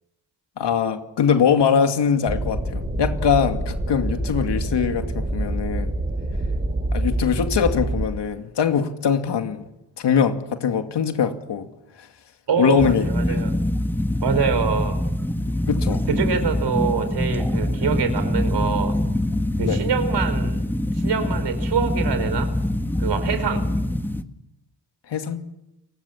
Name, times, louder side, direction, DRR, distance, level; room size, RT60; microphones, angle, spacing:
voice 1, 0.6-5.9 6.9-9.7 10.0-11.7 12.0-12.1 12.6-13.1 15.7-16.0 19.6-19.8 25.1-25.4, left 7 dB, 75° left, 2.5 m, -22 dB
sound 1, 2.3-8.1, right 1 dB, 25° right, 5.8 m, -26 dB
voice 2, 12.5-13.6 14.2-15.0 16.1-19.0 19.6-20.6 20.9-22.5 23.0-23.6, right 6 dB, 70° right, 5.0 m, -25 dB
sound 2, 12.8-24.2, left 1 dB, 5° left, 1.6 m, -24 dB
29.5 x 20.5 x 7.3 m
cardioid pair, 80°, 42 cm